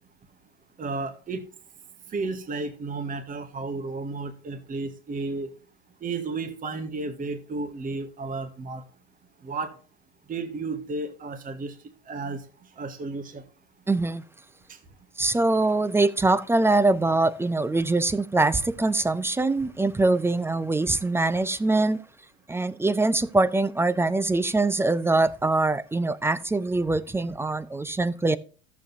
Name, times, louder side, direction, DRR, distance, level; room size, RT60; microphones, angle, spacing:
voice 1, 0.8-1.4 2.1-5.5 6.0-8.8 9.4-9.7 10.3-11.7 12.1-12.4 12.8-13.4, right 3 dB, 25° right, 1.5 m, -32 dB
voice 2, 13.9-14.2 15.2-22.0 22.5-28.4, right 2 dB, 10° right, 0.5 m, -23 dB
14.0 x 7.3 x 2.6 m
hypercardioid pair, 90°, 33 cm